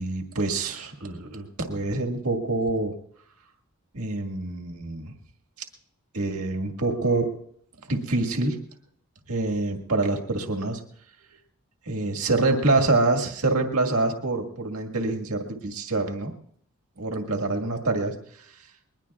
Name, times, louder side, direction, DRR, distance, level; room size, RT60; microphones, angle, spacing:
voice 1, 0.0-2.9 3.9-5.1 6.1-7.3 7.9-8.6 9.3-10.8 11.8-16.3 17.0-18.6, right 2 dB, 80° right, 3 dB, 1.8 m, -26 dB
21.5 x 20.5 x 2.4 m, 0.65 s
head